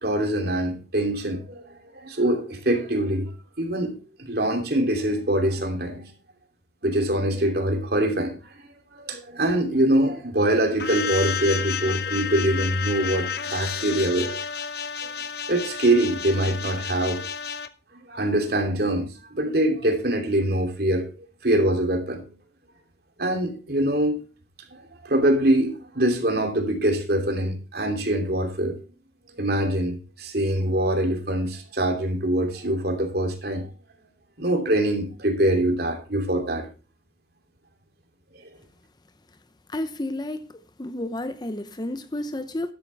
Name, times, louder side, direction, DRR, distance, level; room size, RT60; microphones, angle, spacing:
voice 1, 0.0-3.3 3.6-6.1 6.8-14.3 15.0-15.1 15.5-17.2 18.1-21.1 21.4-22.3 23.2-24.2 24.7-28.7 29.4-33.7 34.4-36.7 38.3-38.5, right 1 dB, 55° right, 2.9 m, -24 dB
sound 1, 10.8-17.7, left 7 dB, 55° left, 0.9 m, -31 dB
voice 2, 39.7-40.5 40.8-42.7, left 1 dB, 20° left, 0.7 m, -31 dB
12.0 x 12.0 x 3.4 m
head